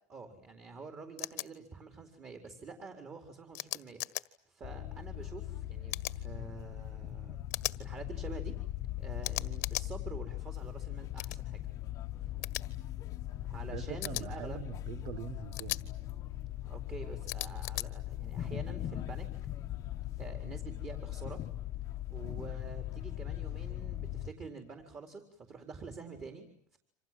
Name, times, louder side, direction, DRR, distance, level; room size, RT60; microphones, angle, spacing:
voice 1, 0.1-7.5 7.8-8.6 9.0-11.6 13.4-14.6 16.7-19.3 20.2-21.4 22.1-26.8, right 4 dB, 25° right, 4.4 m, -47 dB
sound 1, 1.2-1.5 3.5-4.2 5.9-6.2 7.5-7.8 9.2-9.9 11.2-11.4 12.4-12.6 14.0-14.2 15.5-15.8 17.3-17.9, left 21 dB, 85° left, 1.7 m, -37 dB
sound 2, 4.6-24.3, left 13 dB, 35° left, 1.3 m, -40 dB
voice 2, 13.7-15.9, right 10 dB, 50° right, 1.6 m, -43 dB
29.0 x 27.0 x 7.7 m
cardioid pair, 160°, 9 cm